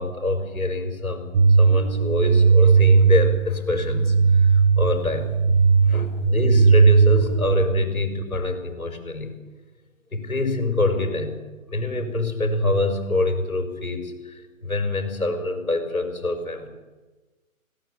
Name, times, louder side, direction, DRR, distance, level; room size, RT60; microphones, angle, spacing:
voice 1, 0.0-5.3 5.8-9.3 10.1-11.4 11.7-16.7, left 2 dB, 80° left, 7 dB, 5.4 m, -25 dB
sound 1, 1.3-7.7, right 5 dB, 30° right, 1.8 m, -17 dB
19.0 x 17.5 x 9.8 m, 1.2 s
figure-of-eight pair, 145°, 42 cm